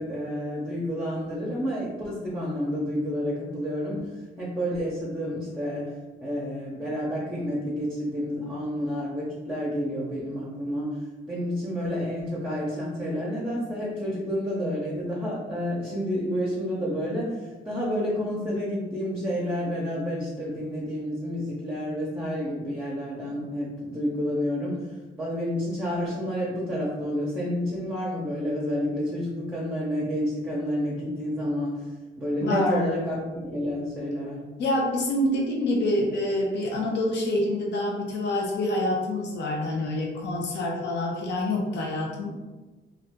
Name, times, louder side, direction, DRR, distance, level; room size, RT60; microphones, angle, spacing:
voice 1, 0.0-4.1 4.4-5.9 6.2-10.9 11.3-24.9 25.2-31.8 32.2-34.4, equal, 10° right, -6 dB, 0.8 m, -29 dB
voice 2, 32.4-33.0 34.6-42.3, left 1 dB, 60° left, -1 dB, 0.7 m, -26 dB
2.6 x 2.3 x 3.5 m, 1.2 s
cardioid pair, 90°, 20 cm